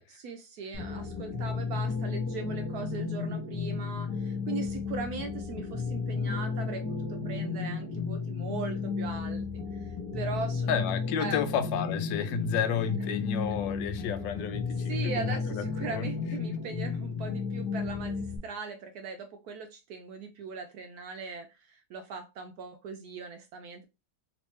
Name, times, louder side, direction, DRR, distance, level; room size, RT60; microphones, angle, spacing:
voice 1, 0.0-9.5 9.7-10.8 11.2-11.5 14.9-23.9, right 4 dB, 75° right, 0.9 m, -40 dB
sound 1, 0.7-18.4, left 5 dB, 30° left, 0.4 m, -33 dB
voice 2, 10.7-16.1, left 8 dB, 85° left, 1.3 m, -31 dB
3.2 x 3.1 x 3.1 m
omnidirectional pair, 2.0 m